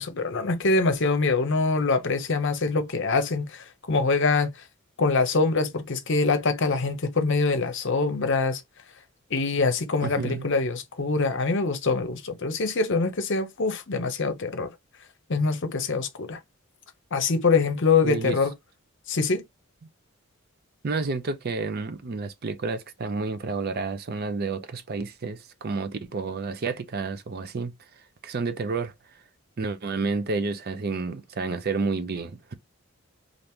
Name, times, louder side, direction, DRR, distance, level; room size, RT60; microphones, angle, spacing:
voice 1, 0.0-4.5 5.0-8.6 9.3-14.7 15.3-16.4 17.1-18.5 19.1-19.4, left 4 dB, 55° left, 0.7 m, -24 dB
voice 2, 10.0-10.4 18.0-18.4 20.8-27.7 28.2-28.9 29.6-32.5, right 4 dB, 45° right, 0.5 m, -30 dB
2.9 x 2.5 x 3.4 m
head